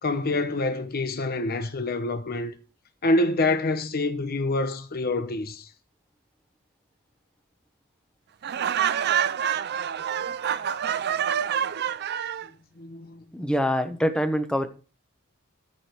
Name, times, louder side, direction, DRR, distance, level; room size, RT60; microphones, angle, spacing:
voice 1, 0.0-2.5 3.0-5.7 12.8-13.2, left 2 dB, 45° left, 0.9 m, -26 dB
Laughter, 8.4-12.5, right 9 dB, 50° right, 0.5 m, -27 dB
voice 2, 13.3-14.7, equal, 5° left, 1.0 m, -24 dB
14.0 x 5.1 x 4.5 m
head